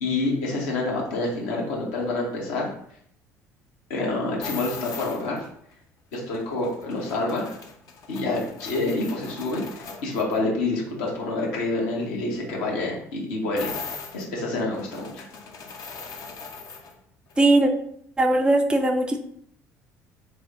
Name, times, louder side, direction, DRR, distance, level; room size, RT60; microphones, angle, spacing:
voice 1, 0.0-2.7 3.9-5.5 6.1-7.5 8.1-13.7 14.1-15.2, left 2 dB, 65° left, -2 dB, 1.1 m, -27 dB
sound 1, 4.4-5.5 6.1-10.4 13.6-16.9 17.3-17.4, left 5 dB, 45° left, 0.6 m, -39 dB
voice 2, 17.4-17.7 18.2-19.2, right 2 dB, 10° right, 3 dB, 0.4 m, -19 dB
3.2 x 2.1 x 3.7 m, 0.66 s
figure-of-eight pair, 55°, 8 cm